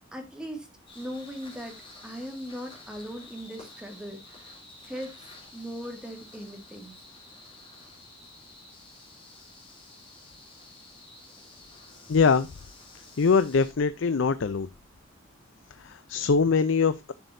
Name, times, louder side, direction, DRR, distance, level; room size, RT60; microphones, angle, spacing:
voice 1, 0.1-0.7 1.0-1.8 2.0-4.2 4.8-6.9 11.3-11.5, equal, 5° right, 1.9 m, -39 dB
sound 1, 0.9-13.7, left 2 dB, 25° left, 4.0 m, -51 dB
voice 2, 12.1-12.5 13.2-14.7 15.8-17.1, left 5 dB, 65° left, 0.5 m, -23 dB
11.0 x 7.1 x 2.6 m
head